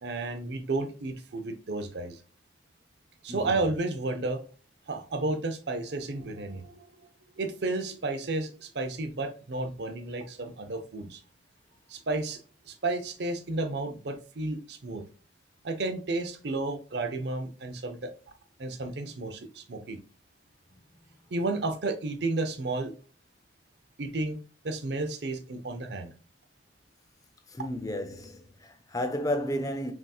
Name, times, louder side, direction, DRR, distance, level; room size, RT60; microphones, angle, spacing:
voice 1, 0.0-2.2 3.2-4.4 4.9-6.9 7.4-11.2 11.9-12.4 12.7-15.0 15.6-18.1 18.6-20.0 21.3-22.9 24.0-24.4 24.6-26.1, right 2 dB, 60° right, 0.6 m, -32 dB
voice 2, 27.5-29.9, left 1 dB, 20° left, 0.4 m, -32 dB
6.0 x 2.7 x 2.3 m
head